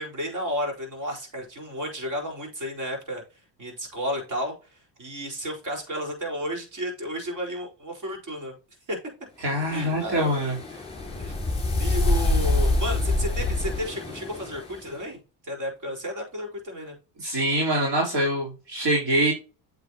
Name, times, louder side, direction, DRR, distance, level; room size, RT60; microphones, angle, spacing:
voice 1, 0.0-3.2 3.6-4.5 5.0-8.5 8.9-9.0 9.7-10.3 11.2-11.4 11.8-15.2 15.4-16.9, equal, 45° right, 1 dB, 4.5 m, -32 dB
voice 2, 9.4-10.6 17.2-19.3, right 1 dB, 60° right, -3 dB, 3.7 m, -24 dB
sound 1, 9.6-14.9, left 2 dB, 15° left, 4.1 m, -26 dB
8.6 x 6.8 x 2.9 m, 0.31 s
cardioid pair, 115°, 45 cm